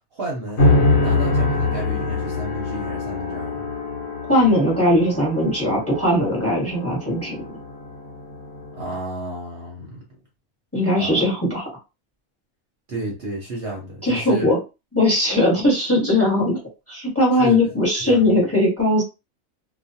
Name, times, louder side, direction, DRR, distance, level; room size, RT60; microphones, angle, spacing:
voice 1, 0.1-3.7 8.8-10.0 11.0-11.2 12.9-14.5 17.3-18.4, right 1 dB, 55° right, 0.8 m, -32 dB
sound 1, 0.6-9.0, left 2 dB, 60° left, 1.0 m, -24 dB
voice 2, 4.3-7.4 10.7-11.7 14.0-14.6 14.9-16.6 16.9-19.0, left 1 dB, 10° left, 1.0 m, -19 dB
2.4 x 2.3 x 2.6 m
omnidirectional pair, 1.4 m